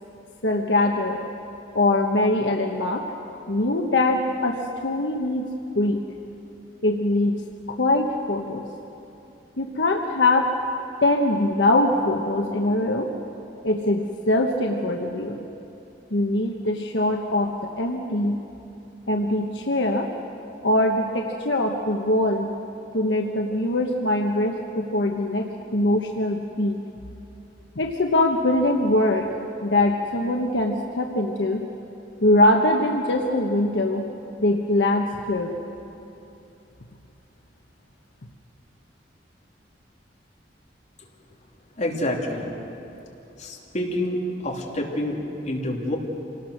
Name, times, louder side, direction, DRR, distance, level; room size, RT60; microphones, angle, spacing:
voice 1, 0.4-1.2 1.7-3.0 3.5-5.5 5.7-6.0 6.8-7.4 7.7-8.6 9.6-10.5 11.0-13.1 13.6-15.4 16.1-18.4 19.1-20.1 20.6-22.5 22.9-26.8 27.8-29.3 29.6-31.6 32.2-34.1 34.4-35.6, left 1 dB, 75° left, 1 dB, 1.2 m, -22 dB
voice 2, 41.8-42.5 43.4-46.0, left 1 dB, 40° left, -2 dB, 3.0 m, -28 dB
27.0 x 18.5 x 6.6 m, 2.8 s
head